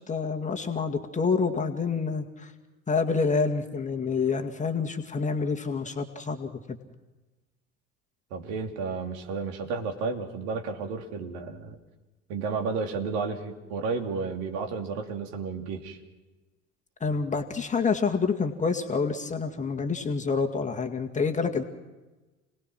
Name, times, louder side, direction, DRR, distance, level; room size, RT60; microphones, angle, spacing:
voice 1, 0.1-2.5 2.9-6.5 17.0-21.6, left 4 dB, 20° left, 4 dB, 2.0 m, -27 dB
voice 2, 8.3-11.8 12.3-16.0, right 4 dB, 55° right, 4 dB, 3.1 m, -32 dB
30.0 x 19.5 x 6.2 m, 1.2 s
figure-of-eight pair, 70°, 38 cm